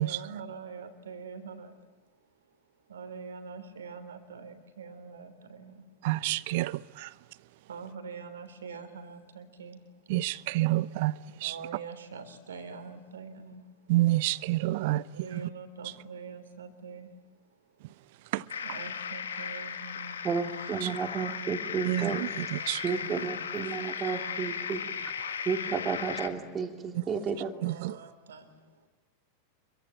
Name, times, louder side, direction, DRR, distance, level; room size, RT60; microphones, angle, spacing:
voice 1, 0.0-1.7 2.9-5.8 7.7-9.8 11.3-13.6 15.1-17.1 18.6-20.9 22.4-24.9 26.9-28.5, right 5 dB, 65° right, 3.4 m, -45 dB
voice 2, 6.0-7.1 10.1-11.6 13.9-15.1 15.3-15.5 18.3-18.5 20.8-20.9 21.8-22.8 23.1-23.2 26.9-27.0 27.6-28.0, right 17 dB, 50° right, 0.8 m, -29 dB
sound 1, 18.5-26.3, left 7 dB, 65° left, 1.8 m, -36 dB
voice 3, 20.2-22.2 22.8-24.8 25.5-27.5, right 6 dB, 25° right, 3.4 m, -32 dB
27.0 x 23.5 x 8.9 m
figure-of-eight pair, 90°, 0 cm